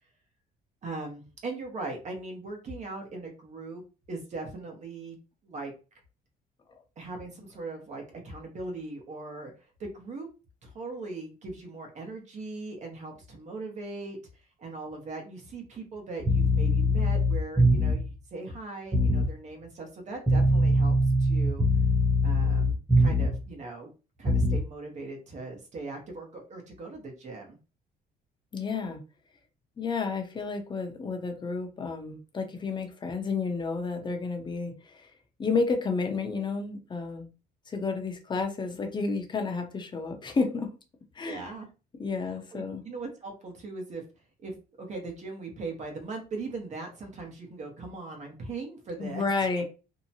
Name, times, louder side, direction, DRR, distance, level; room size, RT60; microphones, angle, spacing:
voice 1, 0.8-3.8 4.1-5.2 5.4-5.7 7.0-10.3 10.6-14.2 14.6-21.6 22.2-23.9 24.2-27.6 41.2-41.7 42.5-44.0 44.4-49.2 49.5-49.6, right 3 dB, 45° right, 2 dB, 0.9 m, -39 dB
sound 1, 16.2-18.1 18.9-19.3 20.3-23.4 24.2-24.6, left 1 dB, 15° right, 1.1 m, -23 dB
voice 2, 28.5-29.0 29.8-35.1 35.4-37.3 37.7-40.7 41.1-41.5 42.0-42.8 49.0-49.6, left 4 dB, 25° left, 4 dB, 0.7 m, -31 dB
2.8 x 2.1 x 2.8 m, 0.32 s
cardioid pair, 110°, 17 cm